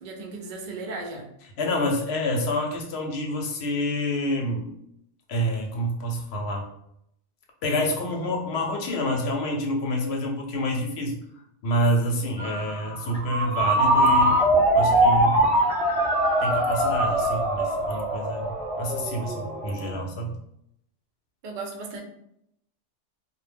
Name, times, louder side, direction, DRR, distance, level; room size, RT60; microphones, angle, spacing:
voice 1, 0.0-1.3 21.4-22.0, right 3 dB, 60° right, 1 dB, 0.5 m, -36 dB
voice 2, 1.6-4.7 5.3-6.6 7.6-11.2 11.6-14.4 14.7-15.4 16.4-18.5 18.8-20.4, equal, 65° left, 1 dB, 0.8 m, -27 dB
Ringtone, 12.4-19.9, right 1 dB, 5° right, 0.8 m, -22 dB
2.1 x 2.1 x 3.3 m, 0.77 s
omnidirectional pair, 1.3 m